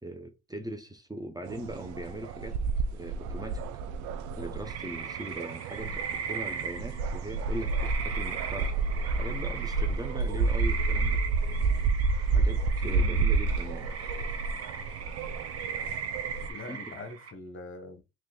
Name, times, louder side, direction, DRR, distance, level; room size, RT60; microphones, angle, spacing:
voice 1, 0.0-2.6 2.9-3.7 4.4-8.8 9.2-11.2 12.3-13.9 16.5-16.8, right 1 dB, 10° right, 0.8 m, -40 dB
sound 1, 1.5-16.5, right 4 dB, 70° right, 0.6 m, -30 dB
sound 2, 4.6-17.3, right 6 dB, 50° right, 1.1 m, -38 dB
voice 2, 12.8-13.2 16.5-18.0, left 3 dB, 40° left, 1.1 m, -43 dB
3.1 x 2.6 x 3.9 m
supercardioid pair, 65°, 30 cm